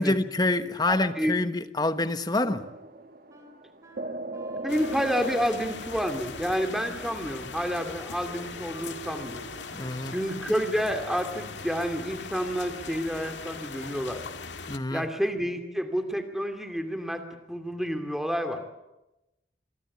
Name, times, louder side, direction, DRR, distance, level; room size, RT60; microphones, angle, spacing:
voice 1, 0.0-2.6 9.7-10.2 14.7-15.0, left 2 dB, 20° left, 1.1 m, -26 dB
voice 2, 0.9-1.4 4.6-9.5 10.1-14.2 14.9-18.7, equal, ahead, 2.6 m, -29 dB
sound 1, 2.4-10.3, right 2 dB, 50° right, 1.6 m, -41 dB
Wind instrument woodwind instrument, 3.3-10.8, right 2 dB, 15° right, 3.5 m, -52 dB
sound 2, 4.7-14.8, left 4 dB, 90° left, 1.9 m, -40 dB
25.0 x 24.0 x 8.5 m
head